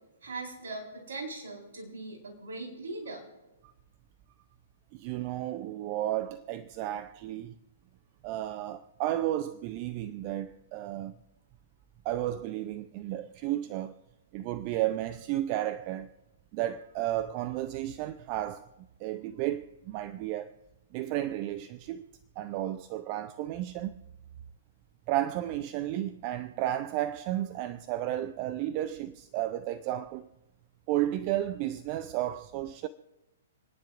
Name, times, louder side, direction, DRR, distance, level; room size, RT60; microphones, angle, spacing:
voice 1, 0.2-3.2, right 2 dB, 65° right, 4.4 m, -40 dB
voice 2, 4.9-7.5 8.2-11.1 12.0-14.0 14.3-16.1 16.5-18.7 19.0-20.5 20.9-22.1 22.4-24.0 25.1-30.3 30.9-32.9, right 13 dB, 35° right, 0.5 m, -33 dB
28.5 x 10.0 x 2.5 m
figure-of-eight pair, 115°, 0 cm